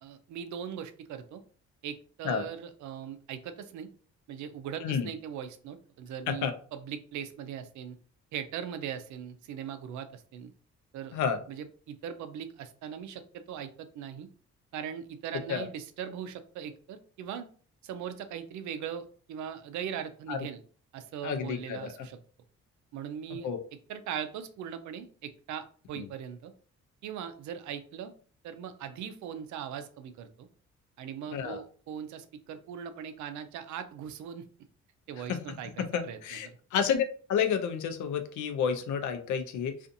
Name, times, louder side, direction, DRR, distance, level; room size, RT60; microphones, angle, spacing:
voice 1, 0.0-1.4 1.8-3.9 4.3-8.0 8.3-10.5 10.9-11.2 11.5-14.3 14.7-17.5 17.8-20.6 20.9-22.2 22.9-23.5 23.9-26.5 27.0-28.1 28.4-30.5 31.0-34.4 35.1-36.4, right 8 dB, 70° right, 10 dB, 0.5 m, -40 dB
voice 2, 21.2-21.9 23.4-23.6 26.0-26.1 31.3-31.6 35.3-39.7, left 7 dB, 75° left, 7 dB, 0.6 m, -30 dB
2.5 x 2.4 x 2.6 m, 0.43 s
cardioid pair, 90°, 30 cm